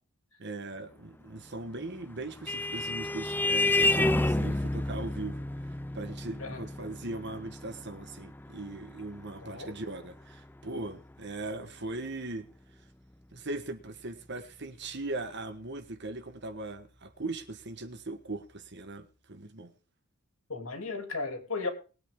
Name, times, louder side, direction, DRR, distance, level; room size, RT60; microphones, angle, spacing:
voice 1, 0.4-12.5 13.3-19.7, right 2 dB, 50° right, 1.4 m, -39 dB
Vehicle horn car horn honking, 1.8-10.8, left 2 dB, 10° left, 0.5 m, -31 dB
voice 2, 9.4-9.7 20.5-21.7, left 3 dB, 65° left, 3.1 m, -35 dB
20.5 x 8.8 x 3.7 m
head